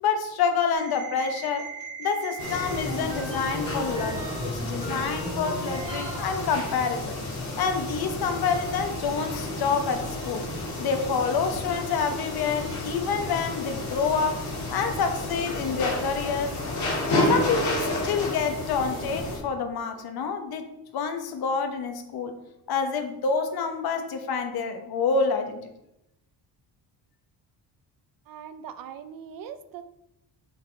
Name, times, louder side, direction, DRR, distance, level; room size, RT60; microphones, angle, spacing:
voice 1, 0.0-1.7 2.0-7.2 7.6-10.5 10.8-14.4 14.7-16.5 17.3-20.7 20.9-22.3 22.7-25.6, left 5 dB, 65° left, 6 dB, 1.1 m, -27 dB
sound 1, 0.7-6.6, right 2 dB, 15° right, 2.5 m, -37 dB
sound 2, 2.4-19.4, left 2 dB, 45° left, 2.1 m, -31 dB
voice 2, 28.3-29.8, right 8 dB, 60° right, 10 dB, 0.7 m, -41 dB
6.6 x 5.7 x 4.5 m, 0.85 s
cardioid pair, 160°, 39 cm